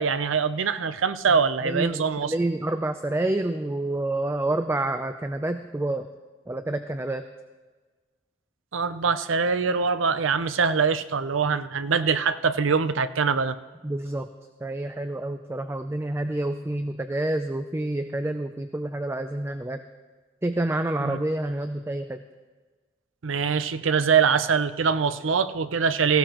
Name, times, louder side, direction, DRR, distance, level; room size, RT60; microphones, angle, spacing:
voice 1, 0.0-2.3 8.7-13.6 21.0-21.2 23.2-26.2, right 5 dB, 85° right, 13 dB, 0.6 m, -23 dB
voice 2, 1.6-6.1 6.5-7.3 13.8-14.3 14.6-19.8 20.4-22.2, right 1 dB, 15° right, 8 dB, 0.4 m, -28 dB
18.0 x 15.5 x 3.0 m, 1.3 s
head